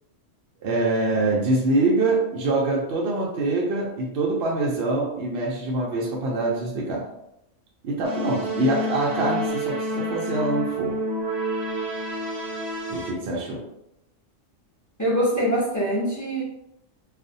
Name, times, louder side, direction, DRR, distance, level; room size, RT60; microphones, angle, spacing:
voice 1, 0.6-7.1 7.8-11.0 12.9-13.6, right 2 dB, 60° right, -3 dB, 0.7 m, -24 dB
sound 1, 8.0-13.1, equal, 25° right, 0.6 m, -29 dB
voice 2, 15.0-16.4, equal, 25° left, -8 dB, 0.4 m, -23 dB
2.5 x 2.0 x 2.6 m, 0.82 s
omnidirectional pair, 1.3 m